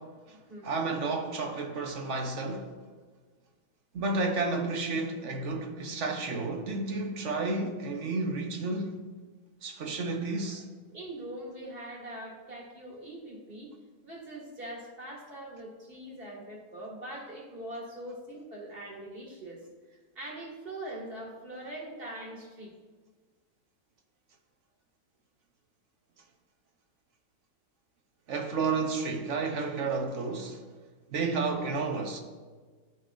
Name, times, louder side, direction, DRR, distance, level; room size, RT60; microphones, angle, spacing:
voice 1, 0.6-2.7 3.9-9.0 9.6-10.6 28.3-30.6 31.1-32.2, right 3 dB, 55° right, 1.0 m, -31 dB
voice 2, 10.9-13.7 14.0-22.7, right 1 dB, 35° right, 1.9 m, -42 dB
12.0 x 5.3 x 2.5 m
omnidirectional pair, 1.8 m